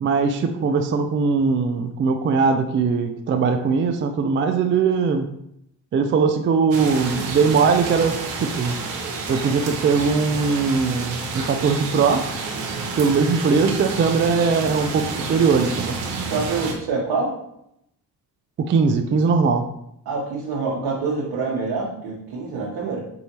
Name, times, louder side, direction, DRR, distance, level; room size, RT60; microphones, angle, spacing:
voice 1, 0.0-5.3 5.9-8.1 8.4-8.8 9.3-12.3 13.0-16.0 18.6-19.6, right 5 dB, 30° right, 6 dB, 0.4 m, -20 dB
sound 1, 6.7-16.7, right 4 dB, 80° right, 0.8 m, -29 dB
voice 2, 16.3-17.3 20.0-23.0, right 4 dB, 60° right, -5 dB, 1.1 m, -26 dB
4.5 x 2.7 x 2.9 m, 0.76 s
hypercardioid pair, 50°, 45 cm